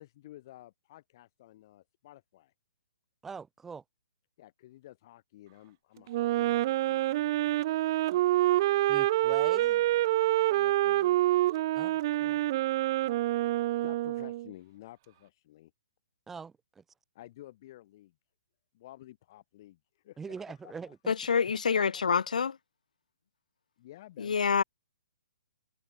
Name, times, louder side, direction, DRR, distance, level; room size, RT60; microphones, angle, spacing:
voice 1, 0.0-2.5 4.4-7.1 10.5-11.2 13.0-13.2 13.8-15.7 17.1-18.1 18.7-20.2 20.6-20.9 21.5-21.9 23.8-24.4, left 15 dB, 30° left, 5.9 m, -52 dB
voice 2, 3.2-3.8 8.9-9.8 11.7-12.4 16.3-16.8 20.2-21.1, right 5 dB, 5° right, 2.5 m, -43 dB
Wind instrument woodwind instrument, 6.1-14.5, right 15 dB, 30° right, 1.8 m, -27 dB
voice 3, 21.1-22.6 24.2-24.6, left 6 dB, 80° left, 2.1 m, -27 dB
hypercardioid pair, 170°, 4 cm